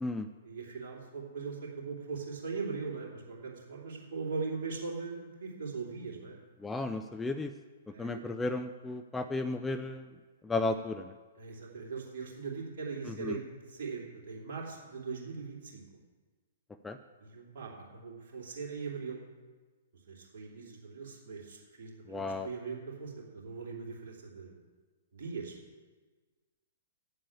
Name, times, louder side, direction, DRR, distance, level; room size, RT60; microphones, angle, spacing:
voice 1, 0.4-6.4 7.9-8.2 11.4-15.8 17.2-19.2 20.1-24.6 25.1-25.6, right 4 dB, 50° right, -2 dB, 2.7 m, -40 dB
voice 2, 6.6-7.5 8.0-10.1 10.4-11.1 13.1-13.4 16.8-17.0 22.1-22.5, left 2 dB, 10° left, 7 dB, 0.4 m, -34 dB
8.6 x 7.4 x 8.5 m, 1.4 s
figure-of-eight pair, 115°, 0 cm